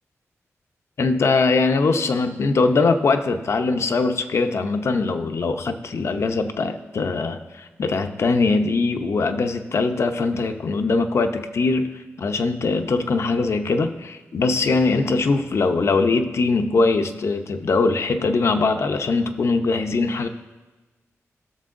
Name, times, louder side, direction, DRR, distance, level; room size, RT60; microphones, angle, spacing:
voice 1, 1.0-20.3, left 3 dB, 60° left, 7 dB, 0.6 m, -21 dB
19.5 x 6.6 x 2.6 m, 1.2 s
wide cardioid pair, 135°, 5 cm